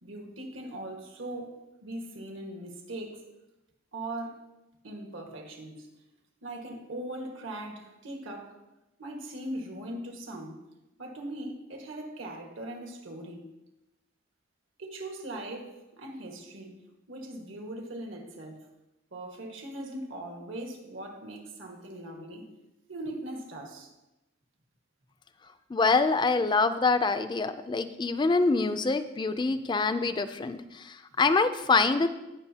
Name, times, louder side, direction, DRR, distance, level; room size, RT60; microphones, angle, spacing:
voice 1, 0.0-3.3 3.9-4.5 4.8-5.9 6.4-8.6 9.0-10.6 11.0-13.5 14.8-18.7 19.1-22.5 22.9-23.9, right 1 dB, 85° right, 1.6 m, -40 dB
voice 2, 25.7-32.1, left 3 dB, 25° left, 0.4 m, -25 dB
17.5 x 6.0 x 2.8 m
head